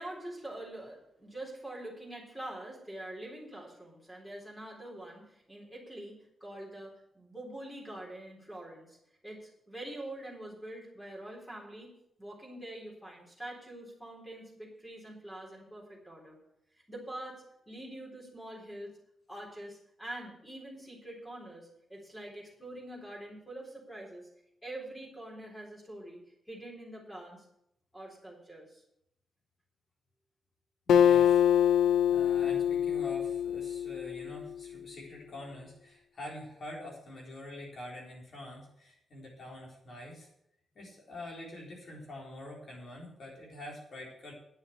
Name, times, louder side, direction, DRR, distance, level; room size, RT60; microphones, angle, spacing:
voice 1, 0.0-9.0 9.2-11.9 12.2-16.4 16.9-18.9 19.3-24.3 24.6-26.2 26.5-27.5 27.9-28.8, right 1 dB, 5° left, -3 dB, 4.0 m, -45 dB
Acoustic guitar, 30.9-34.5, left 9 dB, 90° left, 0.6 m, -25 dB
voice 2, 30.9-31.4 31.7-31.8 32.1-40.3 40.7-44.3, left 1 dB, 45° left, -2 dB, 4.1 m, -45 dB
10.0 x 7.2 x 8.2 m, 0.77 s
wide cardioid pair, 165°, 0 cm